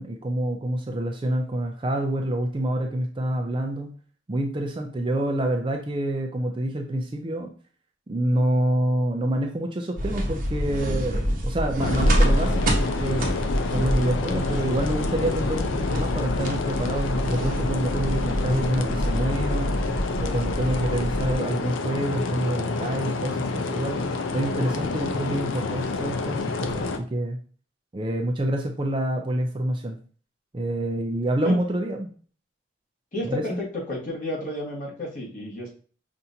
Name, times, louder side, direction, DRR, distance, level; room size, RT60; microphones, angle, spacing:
voice 1, 0.0-3.9 4.3-7.5 8.1-13.3 13.7-19.7 20.2-24.1 24.3-27.4 27.9-30.0 30.5-32.1 33.2-33.6, right 1 dB, 25° right, 3 dB, 0.4 m, -27 dB
sound 1, 10.0-21.3, equal, 45° right, 0.9 m, -26 dB
sound 2, 11.8-27.0, left 3 dB, 85° left, 0.5 m, -29 dB
voice 2, 33.1-35.7, left 1 dB, 40° left, -4 dB, 1.5 m, -31 dB
5.6 x 2.5 x 2.7 m, 0.42 s
head